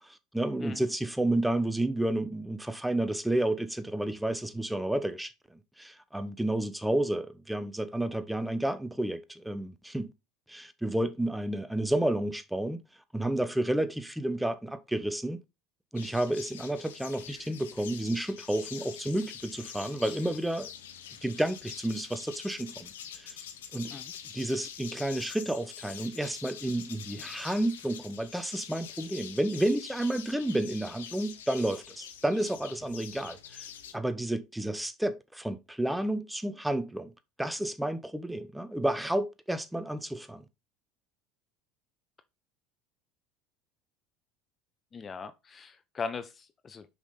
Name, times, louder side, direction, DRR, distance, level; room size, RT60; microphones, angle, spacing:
voice 1, 0.3-5.3 5.8-10.1 10.5-12.8 13.1-15.4 15.9-20.7 21.2-23.4 23.7-24.0 24.3-33.7 33.9-37.1 37.4-40.4, right 1 dB, 5° right, 1.0 m, -31 dB
sound 1, 16.0-33.9, left 9 dB, 80° left, 1.0 m, -45 dB
voice 2, 44.9-46.9, left 5 dB, 30° left, 0.7 m, -39 dB
6.0 x 5.7 x 4.0 m
hypercardioid pair, 75°, 0 cm